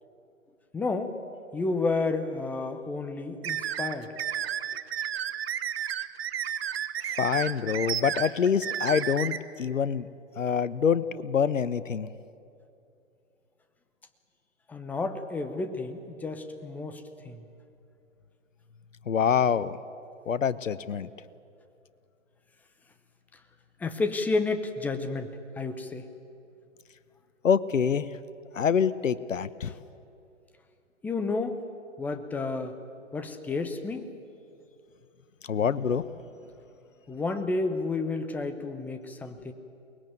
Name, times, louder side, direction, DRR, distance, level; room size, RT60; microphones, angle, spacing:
voice 1, 0.7-1.2 1.5-4.1 14.7-17.5 23.8-25.3 25.6-26.1 31.0-31.6 32.0-32.8 33.1-34.1 37.1-39.5, left 3 dB, 5° left, 7 dB, 0.7 m, -31 dB
sound 1, 3.4-9.4, right 10 dB, 50° right, 1.2 m, -32 dB
voice 2, 7.2-10.1 10.4-12.1 19.1-19.8 20.3-21.1 27.4-28.1 28.5-29.7 35.5-36.0, left 7 dB, 80° left, 15 dB, 1.1 m, -26 dB
22.5 x 20.0 x 9.3 m, 2.6 s
hypercardioid pair, 140°, 38 cm